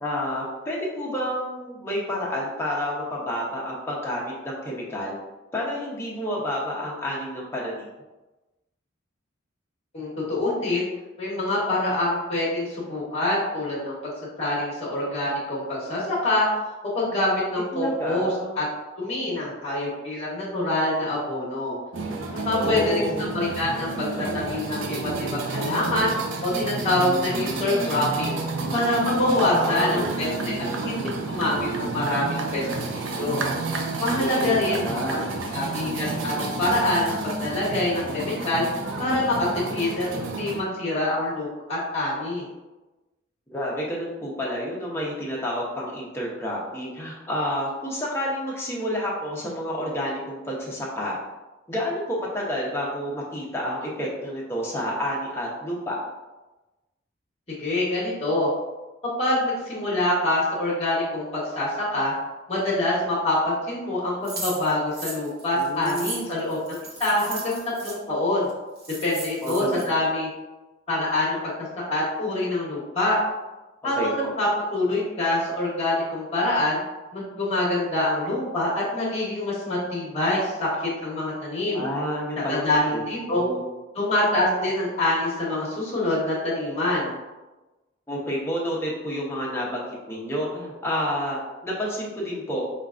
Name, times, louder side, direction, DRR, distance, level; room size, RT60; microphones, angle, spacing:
voice 1, 0.0-5.1 5.5-7.9 17.7-18.5 22.5-23.3 29.5-30.2 34.2-35.3 43.5-51.2 51.7-56.0 65.6-66.2 69.4-69.8 73.9-74.1 81.7-83.0 83.3-83.6 88.1-92.6, equal, 15° left, -4 dB, 0.8 m, -29 dB
voice 2, 9.9-10.9 11.2-13.9 14.4-16.5 16.9-18.3 18.6-18.7 18.9-21.7 22.4-26.1 26.4-28.4 28.7-30.5 30.8-32.7 32.9-33.4 34.0-34.8 35.5-38.6 39.0-42.4 57.6-58.5 59.2-62.1 62.5-68.5 69.0-70.3 70.9-71.4 71.9-73.2 73.8-76.8 77.1-81.8 82.5-83.4 83.9-87.1, left 1 dB, 35° left, -5 dB, 1.1 m, -25 dB
sound 1, 21.9-40.6, right 3 dB, 75° right, 0.5 m, -30 dB
sound 2, 64.2-68.0 68.5-68.6 68.8-69.8, right 2 dB, 55° right, 1.1 m, -36 dB
5.4 x 2.4 x 2.4 m, 1.1 s
head